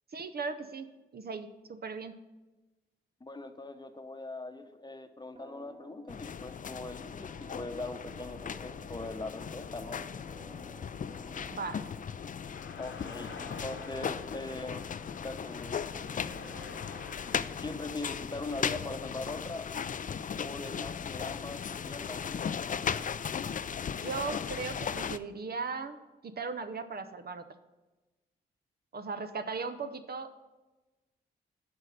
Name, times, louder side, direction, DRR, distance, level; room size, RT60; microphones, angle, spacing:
voice 1, 0.1-0.9 1.1-2.1 11.5-11.9 24.0-26.0 26.2-27.4 28.9-30.4, right 4 dB, 50° right, 9 dB, 0.7 m, -37 dB
voice 2, 3.2-10.0 12.8-14.9 15.2-15.8 17.6-19.7 20.4-22.2, left 2 dB, 20° left, 7 dB, 1.0 m, -41 dB
sound 1, 5.4-17.7, right 2 dB, 30° right, 1.6 m, -55 dB
sound 2, 6.1-25.2, left 7 dB, 40° left, 0.4 m, -37 dB
sound 3, 12.4-17.4, left 5 dB, 65° left, 1.1 m, -48 dB
8.1 x 5.2 x 6.6 m, 1.1 s
supercardioid pair, 40°, 21 cm